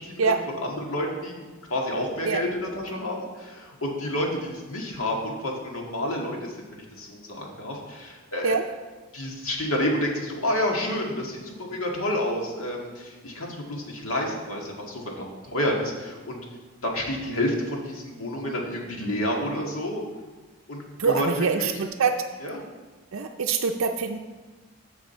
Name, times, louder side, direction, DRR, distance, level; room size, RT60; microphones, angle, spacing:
voice 1, 0.0-1.4 1.7-8.6 9.1-16.4 16.8-20.0 20.7-21.8 22.4-22.6, left 1 dB, 80° left, 0 dB, 1.9 m, -29 dB
voice 2, 21.0-22.2 23.1-24.2, right 5 dB, 70° right, 3 dB, 0.5 m, -24 dB
14.0 x 4.9 x 4.4 m, 1.3 s
head